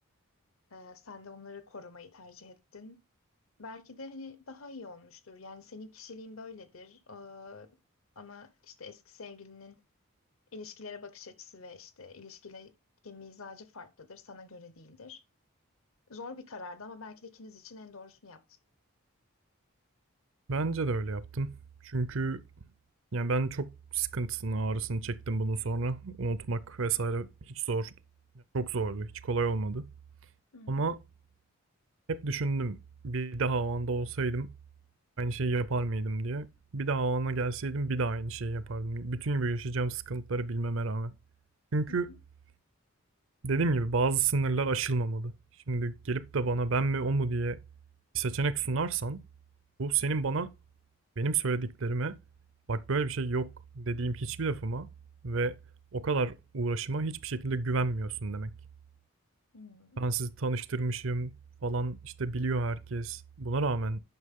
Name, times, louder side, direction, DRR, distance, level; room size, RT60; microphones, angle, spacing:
voice 1, 0.7-3.0 3.6-7.8 8.2-9.8 10.5-12.7 13.0-15.2 16.1-18.6 30.5-30.9 41.9-42.2 59.5-60.0, left 4 dB, 70° left, 1.0 m, -47 dB
voice 2, 20.5-21.5 21.8-22.4 23.1-23.7 23.9-27.9 28.5-29.8 30.7-31.0 32.1-32.8 33.0-34.5 35.2-36.5 36.7-41.1 41.7-42.1 43.4-45.3 45.7-47.6 48.1-49.2 49.8-50.5 51.2-52.2 52.7-53.5 53.7-54.9 55.2-55.5 55.9-58.5 60.0-61.3 61.6-64.0, right 3 dB, 60° right, 0.6 m, -30 dB
9.5 x 5.9 x 3.7 m
head